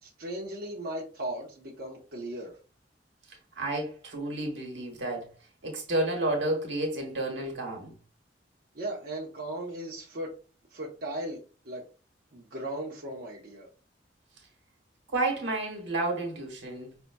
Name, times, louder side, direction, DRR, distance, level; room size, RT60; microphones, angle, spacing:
voice 1, 0.0-2.5 8.7-10.3 10.7-11.8 12.3-13.7, right 1 dB, 55° right, 0.8 m, -37 dB
voice 2, 3.6-5.3 5.6-7.9 15.1-16.9, right 2 dB, 90° right, 1.2 m, -31 dB
5.1 x 2.2 x 2.2 m
head